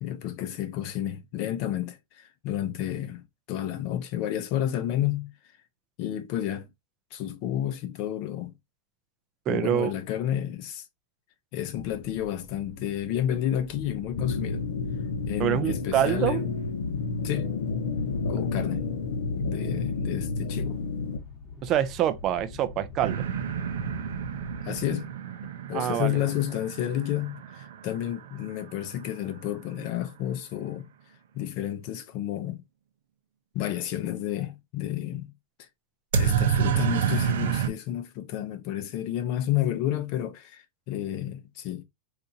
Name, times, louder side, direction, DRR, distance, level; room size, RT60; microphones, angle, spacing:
voice 1, 0.0-5.3 6.0-6.7 7.1-8.5 9.5-10.9 11.5-14.6 15.3-16.5 17.2-17.6 18.3-18.9 19.4-20.8 24.6-25.1 25.7-30.9 31.3-32.6 33.5-35.3 35.6-35.7 36.1-41.8, left 11 dB, 35° left, 0.5 m, -31 dB
voice 2, 9.5-9.9 15.4-16.5 21.6-23.3 25.7-26.4, right 11 dB, 25° right, 0.3 m, -26 dB
sound 1, 11.7-24.9, left 3 dB, 15° left, 1.0 m, -44 dB
sound 2, 14.2-21.2, left 4 dB, 75° left, 0.7 m, -30 dB
sound 3, 23.0-28.8 36.1-37.7, right 8 dB, 70° right, 0.6 m, -29 dB
3.9 x 2.4 x 2.6 m
supercardioid pair, 175°, 0 cm